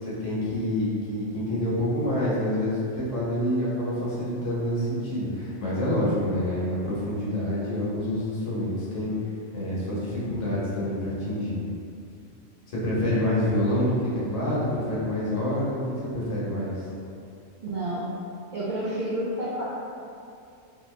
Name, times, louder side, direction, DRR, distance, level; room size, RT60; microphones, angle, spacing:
voice 1, 0.0-9.1 9.5-11.6 12.7-15.8 16.1-16.8, left 1 dB, 60° left, -8 dB, 1.2 m, -27 dB
voice 2, 17.6-18.1 18.5-19.6, right 1 dB, 65° right, -8 dB, 0.5 m, -29 dB
2.8 x 2.6 x 3.1 m, 2.5 s
omnidirectional pair, 1.4 m